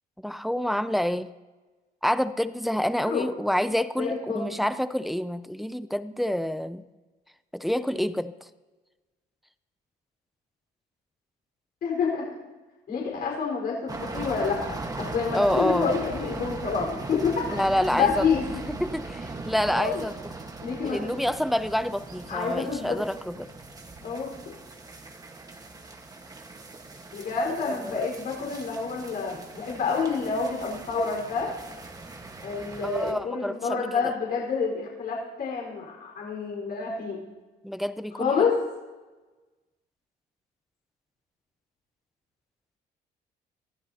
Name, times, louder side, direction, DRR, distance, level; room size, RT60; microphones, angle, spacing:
voice 1, 0.2-1.3 2.0-6.8 7.5-8.3 15.3-15.9 17.5-18.3 18.7-20.1 20.8-23.5 27.6-28.0 32.8-34.1 37.6-38.3, equal, ahead, 13 dB, 0.4 m, -28 dB
voice 2, 4.0-4.5 11.8-12.3 12.9-14.8 15.1-17.5 17.9-18.6 19.7-20.0 20.6-21.0 22.3-23.0 24.0-24.3 27.1-31.5 32.4-37.2 38.2-38.6, left 5 dB, 55° left, -2 dB, 4.6 m, -28 dB
sound 1, 13.9-33.1, right 3 dB, 20° right, 1.4 m, -39 dB
22.0 x 15.0 x 2.9 m, 1.2 s
cardioid pair, 125°, 18 cm